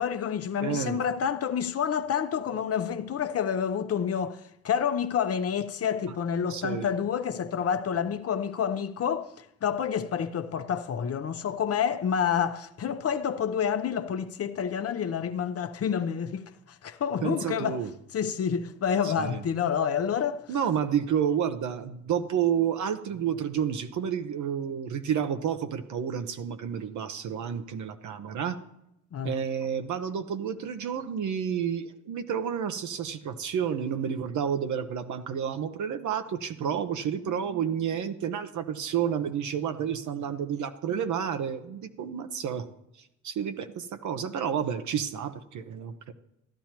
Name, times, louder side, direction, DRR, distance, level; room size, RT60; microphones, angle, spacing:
voice 1, 0.0-17.8 18.1-20.6 29.1-29.4, left 7 dB, 45° left, 0.8 m, -29 dB
voice 2, 0.6-1.0 6.5-6.9 17.2-17.9 19.0-19.4 20.5-28.6 29.2-42.7 43.2-46.1, right 8 dB, 60° right, 0.9 m, -30 dB
14.5 x 11.0 x 3.0 m
supercardioid pair, 65°, 32 cm